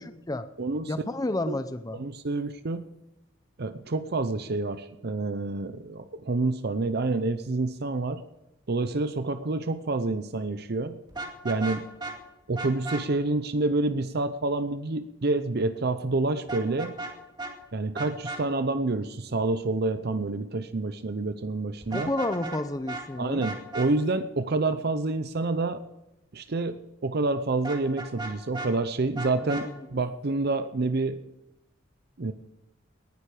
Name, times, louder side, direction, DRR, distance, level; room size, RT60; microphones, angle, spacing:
voice 1, 0.0-0.5 0.9-2.0 21.9-23.4 29.4-29.8, left 2 dB, 20° left, 10 dB, 0.6 m, -31 dB
voice 2, 0.6-1.0 1.5-1.6 1.9-2.9 3.6-8.2 8.7-11.0 11.4-11.9 12.5-16.9 17.7-22.1 23.2-25.8 26.3-31.2 32.2-32.3, right 2 dB, 55° right, 11 dB, 0.7 m, -28 dB
Vehicle horn car horn honking, 11.1-12.2 12.6-13.0 16.5-17.1 17.4-17.5 18.0-18.4 21.8-22.6 22.9-23.0 23.4-23.9 27.6-28.7 29.2-29.7, right 2 dB, 20° right, 2.2 m, -35 dB
19.0 x 11.5 x 4.9 m, 0.93 s
head